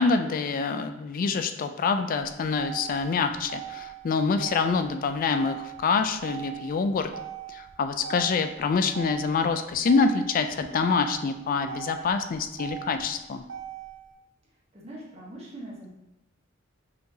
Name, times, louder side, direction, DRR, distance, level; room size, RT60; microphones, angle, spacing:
voice 1, 0.0-7.1 7.5-13.4, left 4 dB, 45° left, 8 dB, 0.3 m, -26 dB
Motor vehicle (road), 2.1-14.1, right 10 dB, 65° right, 0.6 m, -41 dB
voice 2, 14.7-15.9, right 1 dB, 30° right, -5 dB, 0.8 m, -42 dB
5.6 x 3.0 x 2.7 m, 0.91 s
head